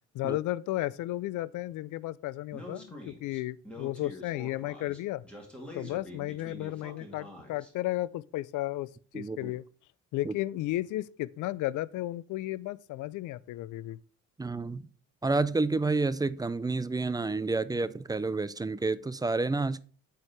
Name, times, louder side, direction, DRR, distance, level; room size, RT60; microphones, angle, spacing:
voice 1, 0.1-5.2 5.7-9.6 10.1-14.0, left 16 dB, 80° left, 0.5 m, -34 dB
Speech, 2.5-7.7, left 1 dB, 5° left, 2.6 m, -46 dB
voice 2, 9.1-9.5 10.2-10.3 14.4-14.9 15.2-19.8, right 3 dB, 15° right, 0.5 m, -29 dB
8.4 x 4.6 x 4.6 m
cardioid pair, 90°, 30 cm